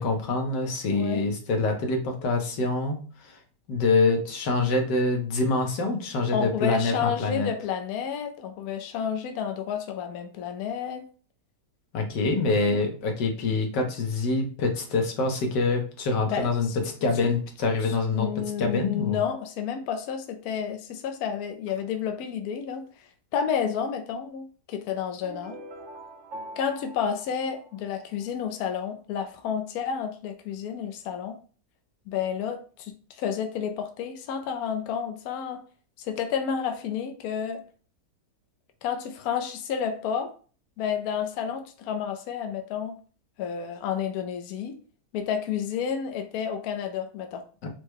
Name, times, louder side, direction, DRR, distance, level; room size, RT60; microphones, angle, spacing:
voice 1, 0.0-3.4 3.7-7.5 11.9-16.7 17.0-18.3 18.6-19.2 47.6-47.7, left 3 dB, 85° left, 3 dB, 1.6 m, -25 dB
voice 2, 0.9-1.2 6.3-11.0 12.6-12.7 16.3-16.8 17.1-17.3 17.8-25.6 26.6-31.4 32.1-35.6 36.0-37.6 38.8-40.3 40.8-43.0 43.4-44.8 45.1-47.4, left 7 dB, 70° left, 6 dB, 1.0 m, -30 dB
sound 1, 25.2-28.3, right 1 dB, 60° right, 0.8 m, -43 dB
4.7 x 2.2 x 4.5 m, 0.40 s
omnidirectional pair, 1.8 m